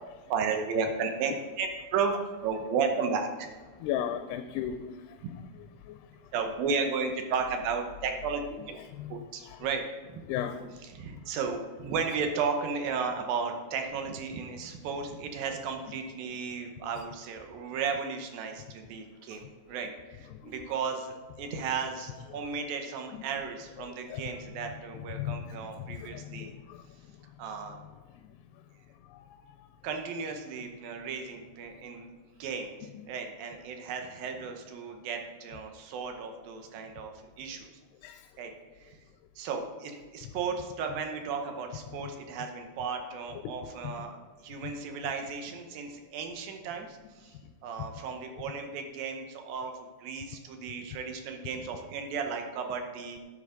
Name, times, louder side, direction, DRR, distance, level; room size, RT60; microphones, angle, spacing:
voice 1, 0.3-2.1 2.4-3.5 6.3-8.8 9.1-9.8 10.1-10.2 10.8-26.5 27.4-27.8 29.8-32.1 32.4-37.1 37.4-37.7 38.4-39.0 39.4-53.2, right 5 dB, 70° right, 4 dB, 2.5 m, -34 dB
voice 2, 3.8-5.2 5.8-6.0 9.0-9.1 9.5-9.6 10.3-10.6 20.4-20.5 24.1-24.3 25.1-26.8 29.1-29.5 38.0-38.3 44.6-44.7, left 10 dB, 90° left, 8 dB, 2.6 m, -36 dB
12.0 x 7.9 x 3.8 m, 1.3 s
omnidirectional pair, 4.6 m